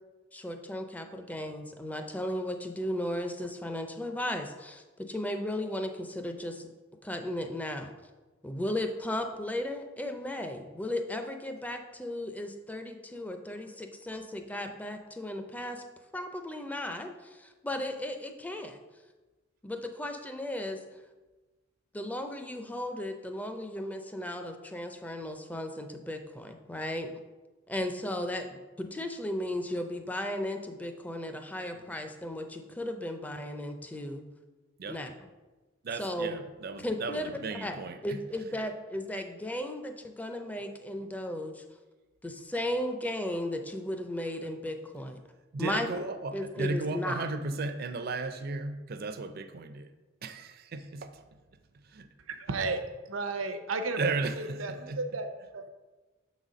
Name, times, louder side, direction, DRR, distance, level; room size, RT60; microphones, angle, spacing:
voice 1, 0.3-6.7 7.0-7.9 8.4-15.8 16.1-18.8 19.6-20.8 21.9-27.1 27.7-34.2 34.9-35.1 35.9-36.4 36.8-37.3 37.6-37.8 38.0-41.6 42.2-45.2 45.6-45.9 46.3-47.2, left 1 dB, 10° left, 6 dB, 0.5 m, -35 dB
voice 2, 35.8-38.2 45.5-49.9 50.2-51.2 51.9-52.1 54.0-55.0, right 3 dB, 50° right, 9 dB, 0.5 m, -35 dB
voice 3, 52.3-52.8 53.1-54.0 54.4-55.7, right 3 dB, 85° right, 7 dB, 0.7 m, -33 dB
6.6 x 4.1 x 5.0 m, 1.2 s
head